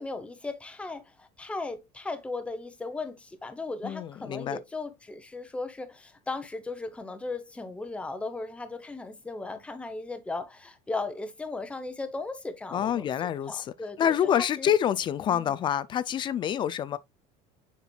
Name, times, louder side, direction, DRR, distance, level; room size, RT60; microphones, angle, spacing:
voice 1, 0.0-13.1 13.5-14.7 15.3-15.5, left 3 dB, 5° left, 0.8 m, -37 dB
voice 2, 3.8-4.6 12.7-13.7 14.0-17.0, left 9 dB, 25° left, 0.4 m, -27 dB
7.0 x 6.0 x 2.3 m
cardioid pair, 160°, 18 cm